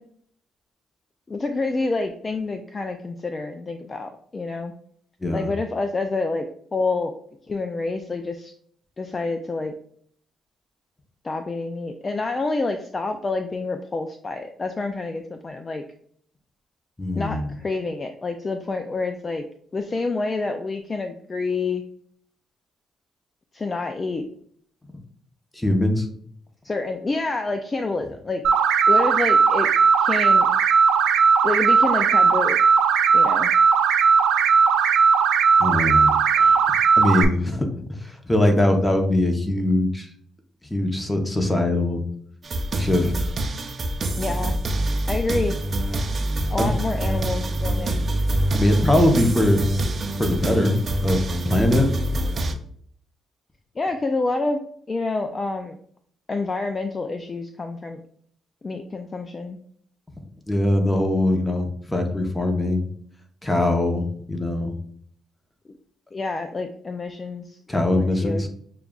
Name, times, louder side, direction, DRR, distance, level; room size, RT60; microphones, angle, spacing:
voice 1, 1.3-4.7 5.3-6.4 6.7-7.1 7.5-8.5 9.0-9.7 11.2-15.8 17.1-19.4 19.7-21.8 23.5-24.3 26.6-28.4 28.9-29.7 30.0-30.5 31.4-32.6 33.1-33.5 44.2-44.6 45.1-45.6 46.5-48.0 53.8-54.6 54.9-55.7 56.3-58.0 58.6-59.6 66.1-68.5, left 3 dB, 30° left, 6 dB, 0.3 m, -28 dB
voice 2, 17.0-17.5 25.6-26.1 35.6-36.6 37.0-40.1 40.7-42.0 42.8-43.1 46.6-46.7 48.5-49.6 50.2-50.8 51.0-51.9 60.5-62.9 63.4-64.7 67.7-68.5, left 1 dB, 10° left, 4 dB, 0.8 m, -22 dB
sound 1, 28.4-37.2, right 6 dB, 90° right, 0.4 m, -17 dB
sound 2, 42.4-52.5, right 1 dB, 40° right, 0.5 m, -25 dB
6.7 x 2.4 x 2.3 m, 0.62 s
cardioid pair, 90°, 0 cm